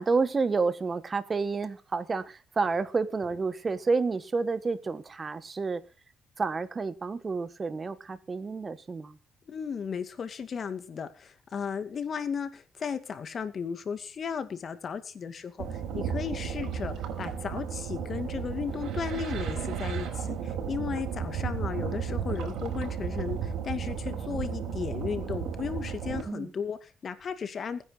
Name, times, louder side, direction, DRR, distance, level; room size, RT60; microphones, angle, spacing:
voice 1, 0.0-5.8 6.4-9.2 26.3-26.5, right 4 dB, 35° right, 1.4 m, -29 dB
voice 2, 9.5-27.8, left 6 dB, 50° left, 2.4 m, -35 dB
sound 1, 15.6-26.2, right 7 dB, 80° right, 5.0 m, -33 dB
21.0 x 9.9 x 4.0 m
cardioid pair, 90°, 0 cm